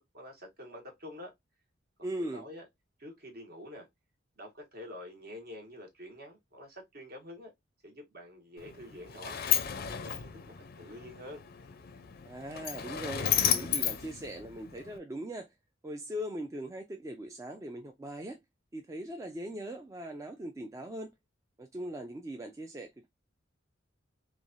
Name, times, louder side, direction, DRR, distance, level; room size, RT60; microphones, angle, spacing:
voice 1, 0.0-1.3 2.1-2.6 3.0-3.9 4.4-7.5 7.8-9.4 9.7-11.4, left 1 dB, 50° right, 1.1 m, -47 dB
voice 2, 2.0-2.4 12.3-15.5 15.8-18.4 18.7-21.1 21.6-22.9, right 1 dB, 15° right, 0.3 m, -40 dB
Sliding door, 8.6-15.0, left 9 dB, 50° left, 0.4 m, -33 dB
3.1 x 2.3 x 2.5 m
head